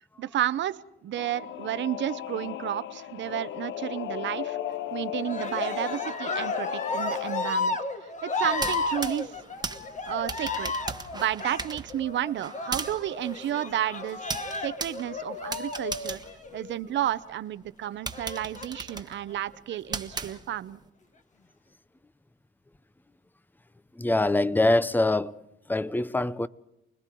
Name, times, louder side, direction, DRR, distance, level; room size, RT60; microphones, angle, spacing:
voice 1, 0.2-4.6 4.9-7.8 8.2-9.4 10.1-10.7 11.1-16.2 16.5-20.8, right 12 dB, 65° right, 0.8 m, -32 dB
Singing / Musical instrument, 1.2-7.5, left 11 dB, 70° left, 0.7 m, -35 dB
Cheering, 5.2-16.9 18.1-19.0 19.7-20.4, left 3 dB, 40° left, 1.8 m, -33 dB
sound 1, 8.5-17.2 17.6-17.7 18.1-20.8, right 3 dB, 20° right, 1.3 m, -38 dB
voice 2, 24.0-25.3 25.7-26.5, left 2 dB, 10° left, 0.7 m, -24 dB
29.0 x 21.0 x 4.6 m
cardioid pair, 90°, 20 cm